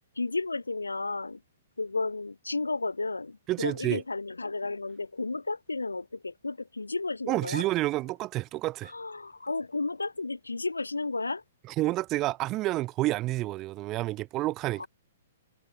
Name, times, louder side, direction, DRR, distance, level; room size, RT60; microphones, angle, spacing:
voice 1, 0.2-1.4 1.8-7.6 8.9-11.4 14.8-14.9, left 3 dB, 85° left, 1.0 m, -33 dB
voice 2, 3.5-4.0 7.3-8.9 11.7-14.9, right 17 dB, 30° right, 0.8 m, -29 dB
figure-of-eight pair, 115°, 0 cm